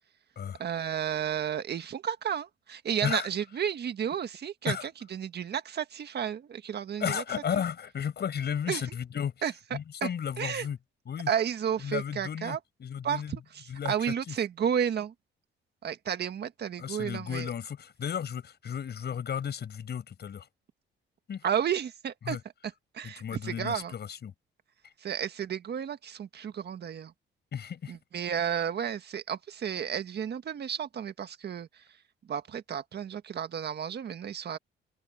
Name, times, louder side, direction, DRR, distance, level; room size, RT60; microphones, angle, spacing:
voice 1, 0.6-7.2 8.7-8.8 9.4-10.1 10.4-10.7 11.3-12.6 13.0-15.1 15.8-17.5 21.4-22.4 22.9-23.9 25.0-27.1 27.9-31.7 32.3-34.6, right 8 dB, 55° right, 1.6 m, -32 dB
voice 2, 7.0-9.4 9.7-10.8 11.1-11.3 11.8-13.4 13.7-13.9 14.3-14.4 16.8-20.5 21.3-21.4 22.3-22.4 23.0-24.3 27.5-27.9, left 8 dB, 55° left, 7.7 m, -34 dB
open air
cardioid pair, 90°, 20 cm